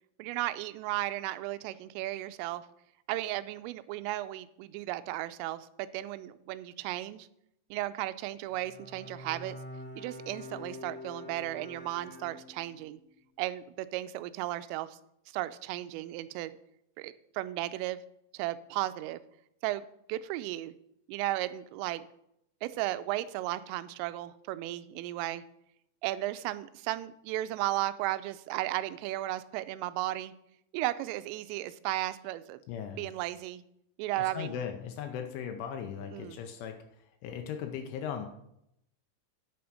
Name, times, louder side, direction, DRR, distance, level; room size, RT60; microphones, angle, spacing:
voice 1, 0.2-2.7 3.1-7.3 7.7-9.6 10.0-13.0 13.4-15.0 15.3-16.5 17.0-18.0 18.3-19.2 19.6-20.7 21.1-22.0 22.6-25.4 26.0-30.3 30.7-32.6 33.0-33.6 34.0-34.5 36.1-36.4, right 15 dB, 85° right, 13 dB, 3.2 m, -35 dB
Bowed string instrument, 8.5-12.8, left 2 dB, 40° left, 1.3 m, -46 dB
voice 2, 32.7-33.0 34.2-36.8 37.2-38.3, left 8 dB, 85° left, 5 dB, 3.1 m, -38 dB
9.3 x 7.0 x 6.3 m, 0.78 s
omnidirectional pair, 5.8 m